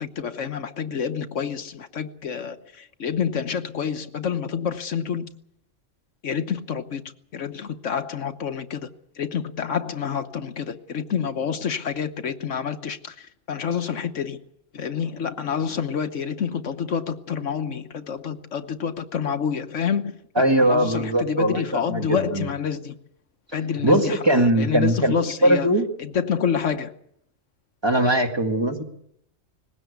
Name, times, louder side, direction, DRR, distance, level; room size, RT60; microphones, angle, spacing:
voice 1, 0.0-5.3 6.2-8.9 9.2-14.4 14.7-22.9 23.5-25.7 26.0-26.9, left 7 dB, 70° left, 9 dB, 1.3 m, -28 dB
voice 2, 20.4-22.5 23.8-25.2 25.4-25.9 27.8-28.8, right 1 dB, 20° right, 3 dB, 1.9 m, -20 dB
20.5 x 16.5 x 8.1 m, 0.73 s
omnidirectional pair, 1.3 m